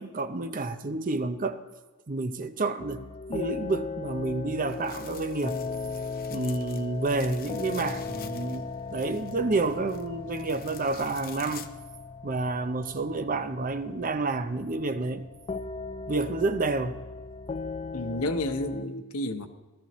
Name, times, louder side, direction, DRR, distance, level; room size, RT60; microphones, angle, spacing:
voice 1, 0.0-1.6 2.1-5.6 6.3-11.7 12.2-15.3 16.1-17.1, right 3 dB, 40° right, 0.6 m, -29 dB
sound 1, 2.8-18.8, left 4 dB, 25° left, 0.3 m, -38 dB
sound 2, 4.7-11.7, left 8 dB, 40° left, 0.7 m, -48 dB
voice 2, 17.9-19.5, left 1 dB, 80° left, 0.9 m, -30 dB
16.5 x 13.0 x 3.1 m
head